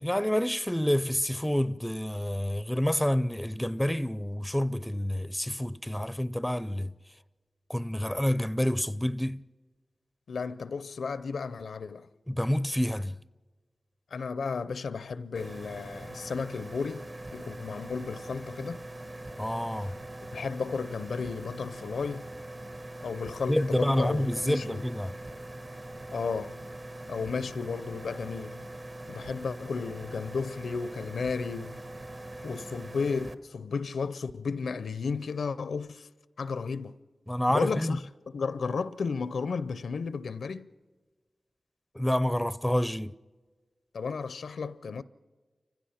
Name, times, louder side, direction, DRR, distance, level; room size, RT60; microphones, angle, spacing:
voice 1, 0.0-6.9 7.7-9.4 12.3-13.1 19.4-19.9 23.5-25.1 37.3-38.0 42.0-43.1, equal, 5° left, 0.5 m, -28 dB
voice 2, 10.3-12.1 14.1-18.9 19.8-19.9 20.3-22.3 23.0-24.8 26.1-26.6 27.1-28.6 29.1-31.8 32.4-36.1 36.4-37.0 37.5-40.7 43.9-45.0, left 5 dB, 90° left, 0.5 m, -33 dB
sound 1, 15.4-33.3, right 1 dB, 40° right, 1.3 m, -42 dB
29.0 x 15.5 x 5.8 m
cardioid pair, 50°, 0 cm